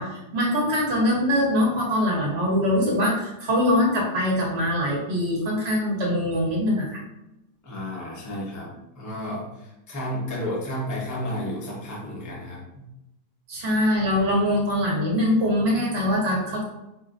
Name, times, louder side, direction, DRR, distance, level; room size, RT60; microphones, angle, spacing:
voice 1, 0.0-7.0 13.5-16.6, left 1 dB, 45° right, -3 dB, 1.0 m, -23 dB
voice 2, 7.6-12.9, equal, 30° left, -4 dB, 0.3 m, -32 dB
4.4 x 3.0 x 2.5 m, 0.91 s
omnidirectional pair, 2.1 m